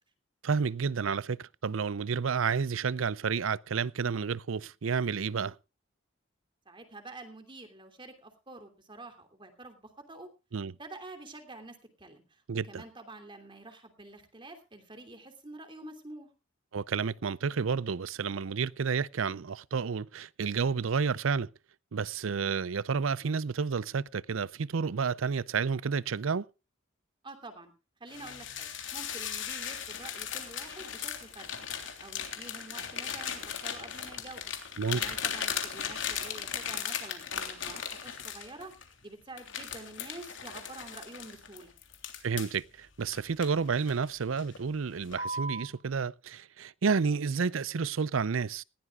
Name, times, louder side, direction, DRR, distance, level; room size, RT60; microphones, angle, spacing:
voice 1, 0.4-5.5 10.5-10.7 12.5-12.8 16.7-21.5 21.9-26.4 34.8-35.0 42.2-48.6, right 5 dB, 85° right, 0.6 m, -30 dB
voice 2, 6.7-10.3 10.8-16.3 27.2-27.7 28.0-38.7 39.0-41.7, right 2 dB, 25° right, 2.9 m, -48 dB
sound 1, 28.1-38.9 39.4-42.6 43.1-44.0 44.4-44.7 45.1-45.7, left 7 dB, 65° left, 3.3 m, -37 dB
19.5 x 16.0 x 2.4 m
head